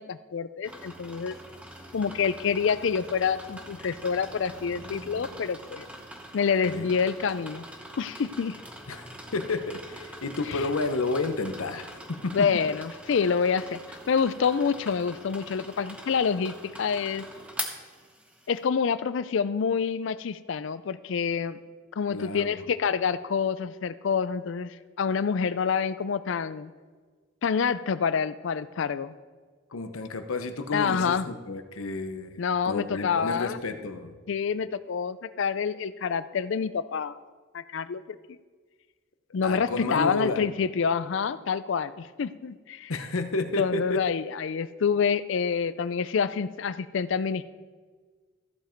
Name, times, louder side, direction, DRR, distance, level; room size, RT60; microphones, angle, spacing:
voice 1, 0.0-1.4 1.9-5.9 6.3-7.6 8.0-8.6 10.5-10.6 12.3-17.3 18.5-21.6 22.0-26.7 27.4-29.1 30.7-31.3 32.4-33.6 34.3-37.2 37.5-38.0 39.3-42.9 43.6-47.4, left 6 dB, 65° left, 15 dB, 0.4 m, -27 dB
sound 1, 0.6-18.6, right 1 dB, 5° right, 0.9 m, -43 dB
voice 2, 9.3-12.5 22.1-22.6 29.7-32.4 32.6-34.1 39.4-40.4 42.9-44.1, left 3 dB, 85° left, 8 dB, 0.9 m, -31 dB
14.5 x 7.2 x 4.5 m, 1.5 s
head